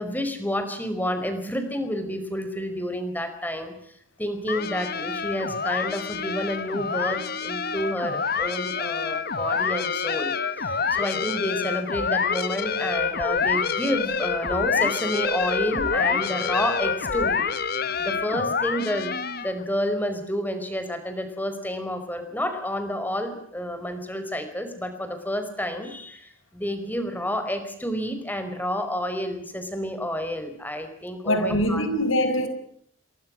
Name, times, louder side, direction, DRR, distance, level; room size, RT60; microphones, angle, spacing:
voice 1, 0.0-3.9 4.2-17.4 18.0-19.2 19.4-31.8, equal, 10° left, 5.0 m, -30 dB
sound 1, 4.5-19.6, left 5 dB, 50° left, 1.5 m, -27 dB
voice 2, 31.3-32.5, equal, 75° left, 6.1 m, -23 dB
29.0 x 23.0 x 6.4 m
head